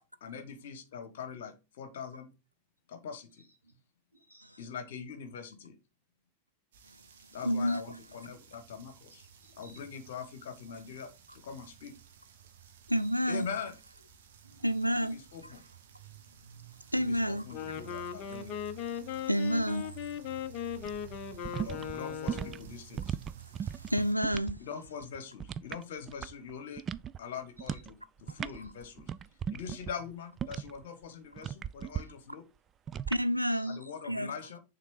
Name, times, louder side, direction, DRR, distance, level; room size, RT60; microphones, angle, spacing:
voice 1, 0.2-2.3 2.9-3.4 4.6-5.8 7.3-9.3 9.6-11.9 13.3-13.7 15.0-15.6 16.9-18.6 21.5-23.2 24.6-26.9 27.2-29.1 29.5-32.4 33.7-34.6, left 6 dB, 55° left, 1.2 m, -43 dB
voice 2, 3.4-3.8 4.1-4.7 9.4-9.8 12.9-13.3 14.4-14.8 18.9-19.7 27.6-27.8 28.5-28.7 33.4-33.8, right 1 dB, 90° right, 1.3 m, -58 dB
sound 1, 6.7-24.1, right 10 dB, 60° right, 1.2 m, -54 dB
voice 3, 7.4-7.8 12.9-13.5 14.6-15.2 16.9-17.4 19.3-19.9 23.6-24.6 33.1-34.3, equal, 90° left, 0.4 m, -29 dB
Wind instrument woodwind instrument, 17.4-22.7, left 9 dB, 40° left, 0.7 m, -38 dB
sound 2, 20.8-24.6 24.9-26.5 26.8-27.2 27.6-27.9 28.2-30.8 31.4-32.0 32.9-33.2, right 8 dB, 25° right, 0.3 m, -37 dB
6.5 x 3.8 x 4.8 m
figure-of-eight pair, 90°, 0 cm